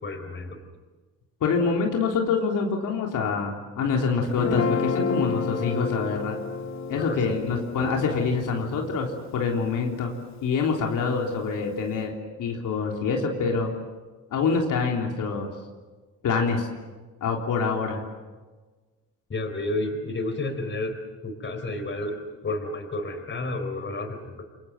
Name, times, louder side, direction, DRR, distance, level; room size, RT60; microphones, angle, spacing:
voice 1, 0.0-0.6 7.0-7.9 19.3-24.4, left 2 dB, 35° left, 7 dB, 4.2 m, -31 dB
voice 2, 1.4-6.4 6.9-10.1 10.4-13.7 14.3-15.5 16.2-16.7 17.2-18.0, left 5 dB, 75° left, 1 dB, 3.7 m, -26 dB
Guitar, 4.3-10.6, left 5 dB, 55° left, 2.5 m, -31 dB
28.5 x 23.0 x 7.8 m, 1.3 s
cardioid pair, 105°, 32 cm